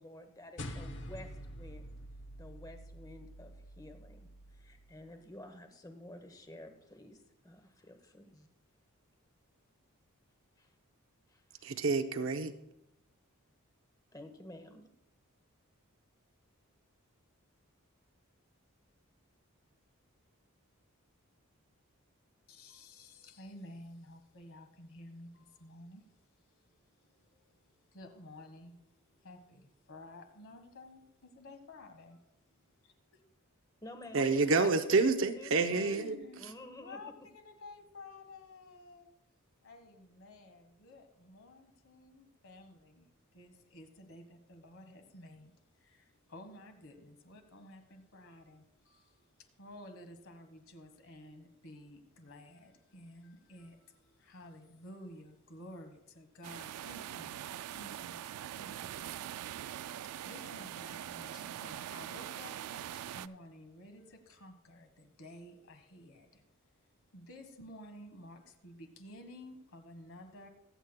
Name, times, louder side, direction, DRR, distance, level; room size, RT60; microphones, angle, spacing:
voice 1, 0.0-2.0 2.4-8.5 10.6-10.7 11.3-11.7 14.1-14.9 33.8-34.8 35.4-36.0 36.4-37.0, left 1 dB, 15° left, 0.9 m, -51 dB
sound 1, 0.6-5.2, equal, 50° left, 0.9 m, -47 dB
voice 2, 11.6-12.5 34.1-36.2, right 3 dB, 60° right, 0.7 m, -28 dB
voice 3, 22.5-33.2 34.2-34.8 35.9-39.2 39.6-66.4 67.1-70.5, left 1 dB, 70° left, 1.5 m, -53 dB
sound 2, 56.4-63.3, right 11 dB, 85° right, 0.3 m, -43 dB
23.5 x 8.0 x 2.2 m
head